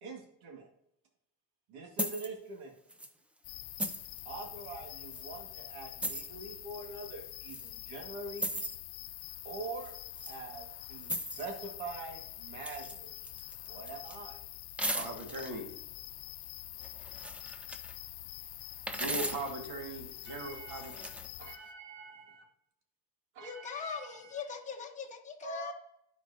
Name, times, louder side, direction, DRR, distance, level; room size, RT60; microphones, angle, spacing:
voice 1, 0.0-0.7 1.7-2.7 4.3-8.5 9.4-9.9 10.3-13.1 13.7-14.4 20.3-21.1 21.4-22.4 23.4-24.3 25.4-25.7, right 3 dB, 85° right, 2 dB, 1.9 m, -44 dB
sound 1, 2.0-2.3 2.9-3.1 3.8-4.2 5.1-5.2 6.0-6.3 7.5-7.7 8.4-8.8 9.8-10.4 11.0-11.5 12.6-13.0 13.2-14.2 14.8-15.5 16.8-17.9 18.9-19.5 20.7-21.3, equal, 5° right, 0.4 m, -37 dB
sound 2, 3.4-21.6, left 16 dB, 75° left, 0.6 m, -46 dB
voice 2, 14.9-15.7 18.9-20.9, right 2 dB, 50° right, 2 dB, 2.1 m, -39 dB
voice 3, 23.4-25.7, left 6 dB, 20° left, 1 dB, 1.0 m, -41 dB
11.5 x 4.5 x 2.7 m, 0.78 s
cardioid pair, 125°, 39 cm